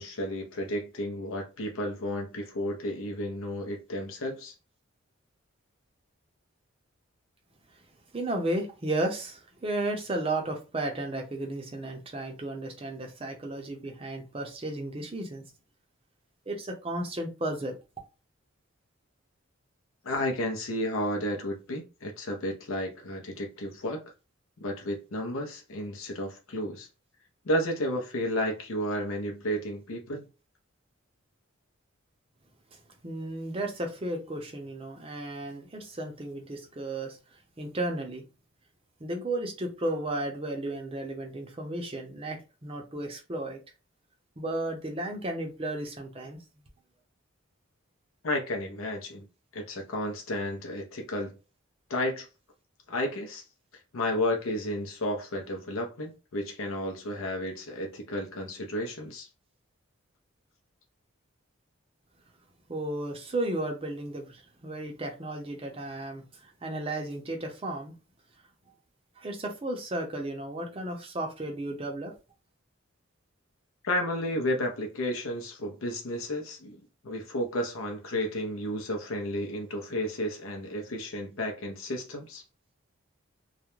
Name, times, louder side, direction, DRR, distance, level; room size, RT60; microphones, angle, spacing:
voice 1, 0.0-4.5 20.0-24.0 24.6-26.9 27.4-30.2 48.2-49.2 49.5-51.3 51.9-52.3 52.9-53.4 53.9-59.3 73.8-82.4, left 1 dB, 75° left, 0.6 m, -32 dB
voice 2, 8.1-15.4 16.5-17.8 33.0-37.2 37.6-38.2 39.0-43.6 44.4-46.4 62.7-66.2 66.6-67.9 69.2-72.1, right 1 dB, 25° right, 0.5 m, -34 dB
2.3 x 2.1 x 3.0 m
head